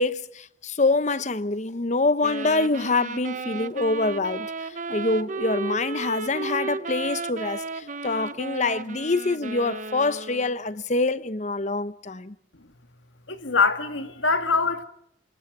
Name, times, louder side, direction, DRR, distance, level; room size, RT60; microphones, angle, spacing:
voice 1, 0.0-12.3, left 3 dB, 40° left, 0.9 m, -25 dB
sound 1, 2.2-10.6, right 3 dB, 40° right, 0.8 m, -34 dB
voice 2, 13.3-14.8, left 4 dB, 85° left, 2.1 m, -23 dB
28.0 x 25.5 x 4.9 m
head